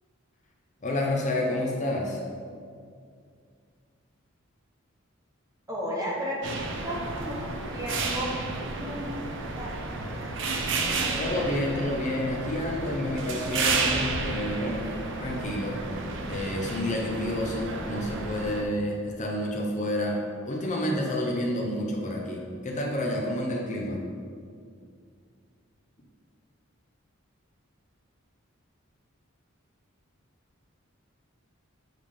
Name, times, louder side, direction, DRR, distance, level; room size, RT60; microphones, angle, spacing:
voice 1, 0.8-2.2 11.2-14.9 15.2-15.8 16.3-24.0, left 1 dB, 35° left, -1 dB, 0.7 m, -29 dB
voice 2, 5.7-6.4 6.8-7.4 7.7-9.0 9.6-9.7 10.2-10.3, equal, 20° right, -4 dB, 1.3 m, -33 dB
sound 1, 6.4-18.6, right 3 dB, 65° right, 0.6 m, -31 dB
7.6 x 3.5 x 5.1 m, 2.2 s
head